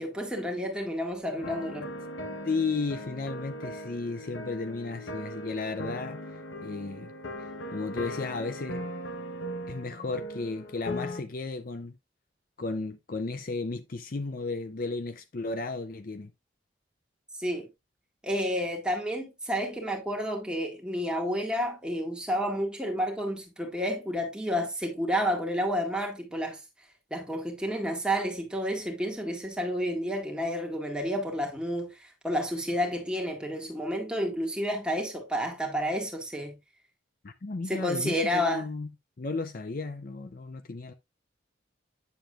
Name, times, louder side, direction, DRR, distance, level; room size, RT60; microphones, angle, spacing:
voice 1, 0.0-1.9 17.4-17.7 18.2-26.6 27.1-36.5 37.7-38.6, equal, 5° right, 1.8 m, -30 dB
sound 1, 1.4-11.2, left 1 dB, 75° left, 1.1 m, -39 dB
voice 2, 2.4-6.2 6.6-7.1 7.4-8.8 9.7-11.9 12.6-16.3 37.2-38.9 39.2-40.9, left 3 dB, 45° left, 0.5 m, -34 dB
9.3 x 6.9 x 2.4 m
head